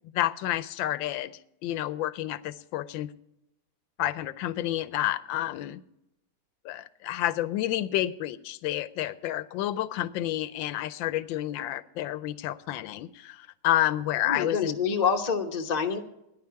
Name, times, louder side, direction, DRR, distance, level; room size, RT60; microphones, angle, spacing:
voice 1, 0.1-1.3 1.6-3.1 4.0-5.8 6.6-14.8, left 14 dB, 75° left, 16 dB, 1.3 m, -29 dB
voice 2, 14.2-16.0, left 6 dB, 45° left, 3 dB, 0.5 m, -27 dB
14.0 x 10.5 x 4.6 m, 0.84 s
omnidirectional pair, 2.3 m